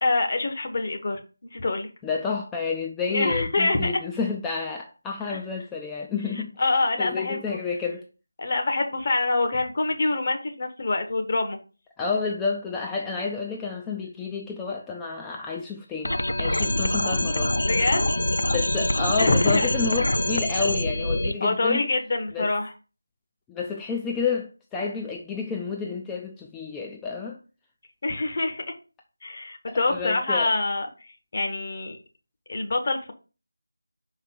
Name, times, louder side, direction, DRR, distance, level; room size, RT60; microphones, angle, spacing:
voice 1, 0.0-1.9 3.1-3.9 5.3-5.4 6.3-7.6 8.4-11.6 17.6-18.2 19.2-19.7 21.4-22.7 28.0-28.7 29.2-30.9 31.3-32.0 32.5-33.1, left 2 dB, 40° left, 1.2 m, -25 dB
voice 2, 2.0-6.7 7.0-8.1 12.0-17.6 18.4-21.9 22.3-22.5 23.5-27.4 29.7-30.6, left 5 dB, 10° left, 0.4 m, -30 dB
sound 1, 16.0-21.3, left 1 dB, 80° left, 0.5 m, -25 dB
5.7 x 4.7 x 3.8 m
figure-of-eight pair, 165°, 0 cm